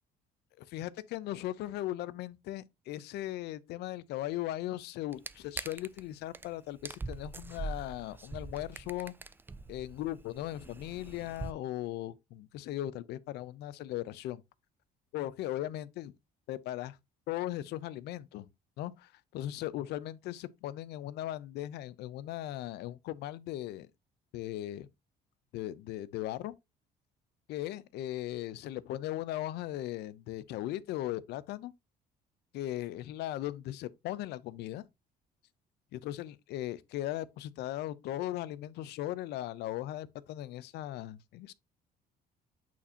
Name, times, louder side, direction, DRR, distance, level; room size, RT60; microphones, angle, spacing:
voice 1, 0.6-9.1 9.7-14.4 15.1-16.1 16.5-17.0 17.3-18.5 18.8-23.9 24.3-24.9 25.5-26.5 27.5-31.7 32.5-34.8 35.9-41.5, left 14 dB, 80° left, 0.5 m, -38 dB
sound 1, 5.1-6.0 6.3-6.5 6.8-11.5, right 3 dB, 10° right, 0.3 m, -43 dB
8.4 x 4.3 x 2.7 m
cardioid pair, 110°, 17 cm